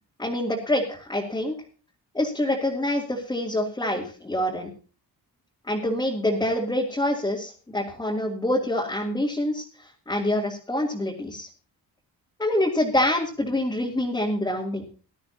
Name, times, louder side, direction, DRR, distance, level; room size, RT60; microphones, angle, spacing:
voice 1, 0.2-1.6 2.1-4.7 5.7-11.5 12.4-14.8, left 1 dB, 10° left, -3 dB, 2.6 m, -26 dB
19.0 x 13.0 x 2.8 m, 0.37 s
wide cardioid pair, 180°, 39 cm